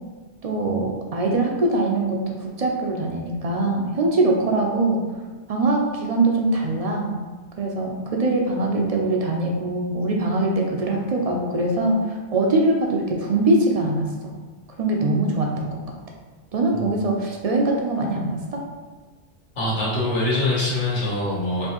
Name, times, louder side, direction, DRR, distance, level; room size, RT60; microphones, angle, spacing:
voice 1, 0.4-5.0 5.5-7.2 7.6-14.3 14.8-15.8 16.5-18.6, right 2 dB, 55° right, 0 dB, 0.4 m, -22 dB
voice 2, 19.6-21.7, left 2 dB, 80° left, -6 dB, 1.5 m, -23 dB
4.3 x 2.6 x 2.9 m, 1.3 s
omnidirectional pair, 1.2 m